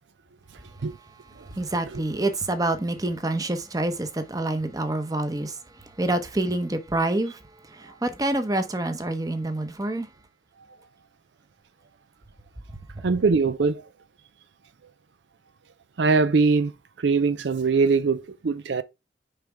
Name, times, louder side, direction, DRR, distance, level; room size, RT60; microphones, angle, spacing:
voice 1, 1.5-5.6 6.0-7.4 7.7-10.1, right 2 dB, 20° right, 0.9 m, -27 dB
voice 2, 13.0-13.9 16.0-16.7 17.0-18.8, right 4 dB, 75° right, 0.5 m, -22 dB
6.7 x 4.9 x 3.4 m
head